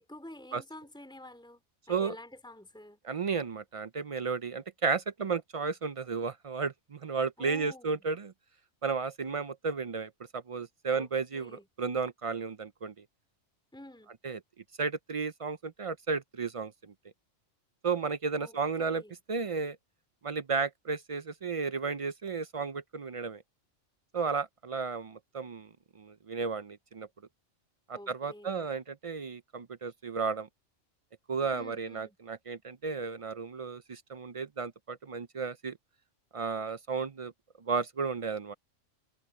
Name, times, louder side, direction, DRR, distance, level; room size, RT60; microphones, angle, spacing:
voice 1, 0.0-1.6 1.9-3.0 7.4-8.1 10.9-11.7 13.7-14.1 18.4-19.2 27.9-28.7 31.5-32.2, left 1 dB, 5° left, 3.6 m, -49 dB
voice 2, 3.0-8.3 8.8-12.9 14.2-14.4 14.8-16.9 17.8-19.0 19.3-19.8 20.2-23.4 24.1-25.7 26.0-27.1 27.9-30.5 31.3-35.8 36.3-37.3 37.7-38.5, right 5 dB, 50° right, 0.4 m, -33 dB
omnidirectional pair, 1.3 m